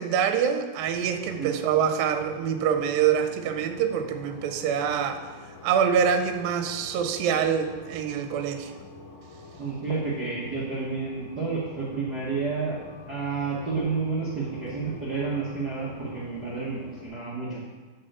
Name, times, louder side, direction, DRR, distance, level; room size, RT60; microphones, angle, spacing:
voice 1, 0.0-5.2 5.6-8.7, right 8 dB, 85° right, 7 dB, 2.4 m, -25 dB
sound 1, 0.8-17.1, left 3 dB, 80° left, 2.7 m, -46 dB
voice 2, 9.6-12.8 13.1-17.6, right 4 dB, 60° right, -7 dB, 1.0 m, -30 dB
7.9 x 5.5 x 6.7 m, 1.3 s
omnidirectional pair, 4.1 m